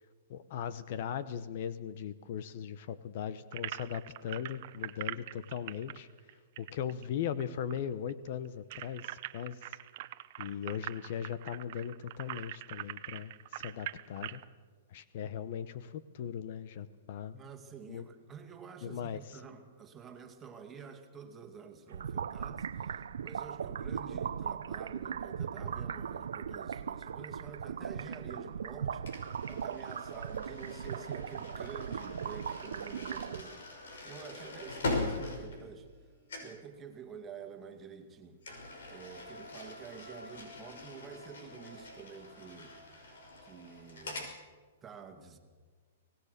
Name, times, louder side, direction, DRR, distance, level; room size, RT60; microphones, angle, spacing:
voice 1, 0.3-6.1 6.6-9.8 10.4-14.4 14.9-17.4 17.9-18.1 18.8-19.4, left 8 dB, 50° left, 14 dB, 0.9 m, -39 dB
sound 1, 3.5-7.4 7.7-7.8 8.1-14.4, right 15 dB, 45° right, 0.9 m, -43 dB
voice 2, 17.3-33.6 34.0-35.9 36.4-38.4 38.9-42.8 43.4-44.3 44.8-45.4, right 7 dB, 15° right, 4 dB, 2.2 m, -49 dB
sound 2, 21.9-33.4, right 7 dB, 85° right, 0.7 m, -38 dB
sound 3, 29.1-36.0 36.3-36.6 38.4-44.3, left 2 dB, 80° left, 5.9 m, -42 dB
24.5 x 18.0 x 6.8 m, 1.5 s
hypercardioid pair, 150°, 0 cm